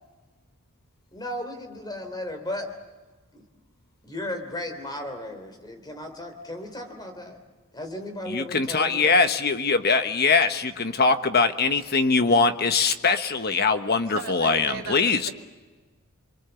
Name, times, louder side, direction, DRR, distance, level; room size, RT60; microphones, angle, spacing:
voice 1, 1.1-2.7 3.3-3.4 4.0-7.4 7.7-9.2, left 1 dB, 20° left, 5 dB, 3.3 m, -35 dB
voice 2, 8.3-15.3, left 4 dB, 45° left, 9 dB, 1.2 m, -22 dB
voice 3, 14.0-15.3, right 4 dB, 70° right, -1 dB, 2.9 m, -37 dB
28.0 x 23.0 x 7.0 m, 1.3 s
head